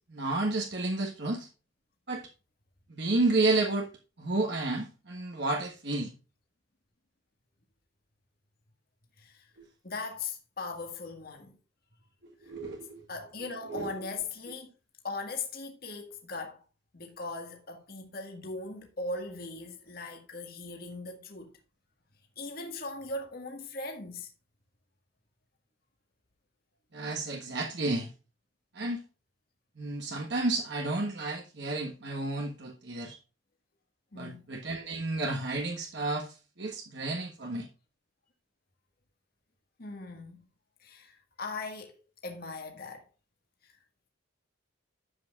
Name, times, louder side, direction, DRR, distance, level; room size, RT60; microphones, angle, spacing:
voice 1, 0.1-1.5 2.1-2.3 2.9-3.9 4.2-6.1 12.4-13.0 13.7-13.9 26.9-28.1 28.7-29.0 29.8-33.2 34.1-37.7, right 2 dB, 55° right, 1.5 m, -31 dB
voice 2, 9.2-9.5 9.8-11.6 13.1-14.7 15.0-16.6 16.9-21.5 22.4-24.3 34.1-34.4 39.8-40.5 40.8-43.0 43.6-43.8, left 3 dB, 45° left, 1.8 m, -39 dB
11.5 x 8.0 x 2.5 m
head